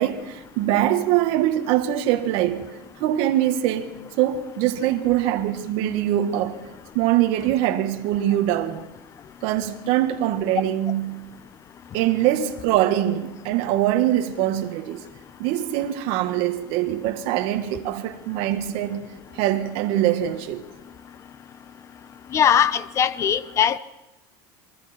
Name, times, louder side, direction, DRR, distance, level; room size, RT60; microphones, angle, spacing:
voice 1, 0.0-2.7 3.0-6.6 6.9-8.9 9.4-11.2 11.9-15.1 15.4-20.6, right 12 dB, 55° right, 1.8 m, -23 dB
voice 2, 22.3-23.8, left 8 dB, 25° left, 0.7 m, -20 dB
27.5 x 23.0 x 4.5 m
supercardioid pair, 160°, 12 cm